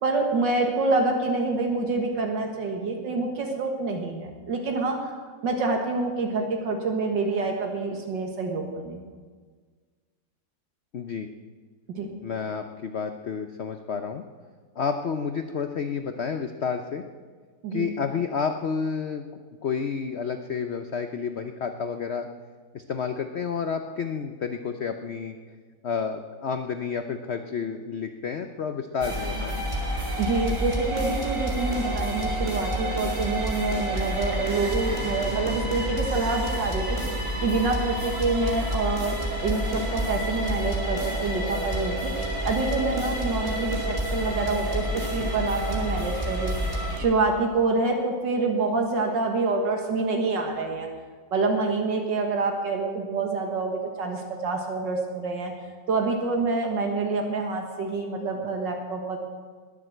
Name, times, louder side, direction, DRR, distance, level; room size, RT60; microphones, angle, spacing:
voice 1, 0.0-5.1 5.4-9.0 11.9-12.2 17.6-17.9 29.9-37.0 37.4-39.2 39.4-42.1 42.4-46.6 47.0-50.9 51.3-55.5 55.9-59.2, right 3 dB, 80° right, 2 dB, 2.2 m, -27 dB
voice 2, 10.9-11.3 12.2-14.2 14.8-17.0 17.7-19.3 19.6-22.3 22.7-25.4 25.8-29.6 45.2-45.3, left 6 dB, 55° left, 7 dB, 0.7 m, -30 dB
sound 1, 29.0-47.0, right 1 dB, 15° right, 2.4 m, -29 dB
21.0 x 7.6 x 7.8 m, 1.5 s
omnidirectional pair, 1.9 m